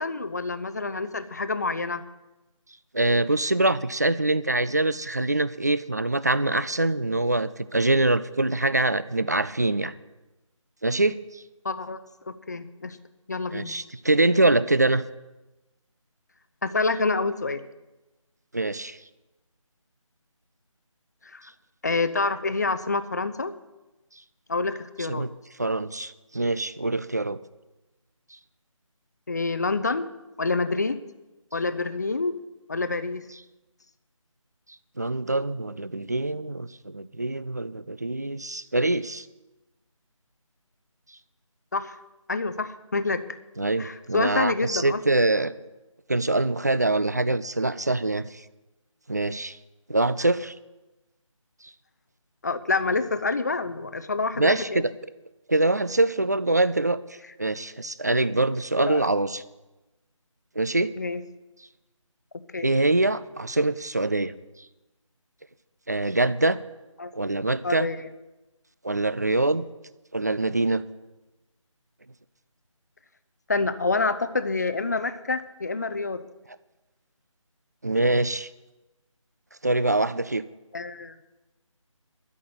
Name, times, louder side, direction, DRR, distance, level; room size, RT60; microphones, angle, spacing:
voice 1, 0.0-2.0 11.6-12.0 12.3-13.0 13.3-13.7 16.6-17.6 21.3-21.4 21.8-23.6 24.5-25.3 29.3-30.1 30.4-31.0 31.5-32.4 32.7-33.2 41.7-42.0 42.3-43.2 43.8-45.0 52.4-54.8 58.9-59.1 61.0-61.2 62.5-62.7 67.0-67.1 67.6-68.1 73.5-76.2 80.7-81.1, left 3 dB, 30° left, 12 dB, 0.6 m, -27 dB
voice 2, 2.9-9.9 10.8-11.4 13.5-15.0 18.5-19.0 25.0-25.3 25.6-27.4 35.0-39.3 43.6-45.5 46.1-48.4 49.1-49.6 49.9-50.5 51.6-51.7 54.4-54.9 55.5-59.4 60.6-60.9 62.6-64.3 65.9-66.6 67.1-67.9 68.8-69.6 70.1-70.8 77.8-78.5 79.6-80.4, right 2 dB, 30° right, 16 dB, 0.4 m, -24 dB
13.0 x 6.2 x 9.3 m, 1.1 s
figure-of-eight pair, 160°, 17 cm